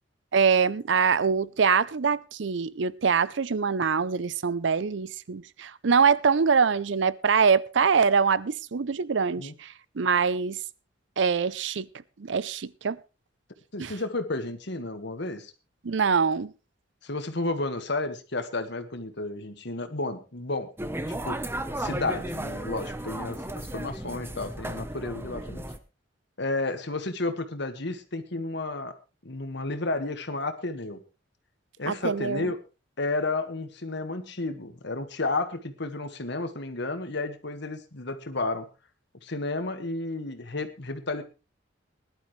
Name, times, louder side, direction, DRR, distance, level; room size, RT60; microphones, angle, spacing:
voice 1, 0.3-10.6 11.2-11.9 12.2-13.0 13.8-13.9 15.8-16.5 31.9-32.5, right 6 dB, 65° right, 0.6 m, -24 dB
voice 2, 13.7-15.5 17.0-20.7 21.1-21.4 21.8-25.7 26.4-31.0 31.8-32.6 33.0-38.7 39.2-41.2, left 2 dB, 60° left, 1.7 m, -32 dB
sound 1, 20.8-25.8, right 1 dB, 10° right, 0.9 m, -34 dB
19.5 x 11.5 x 3.2 m
head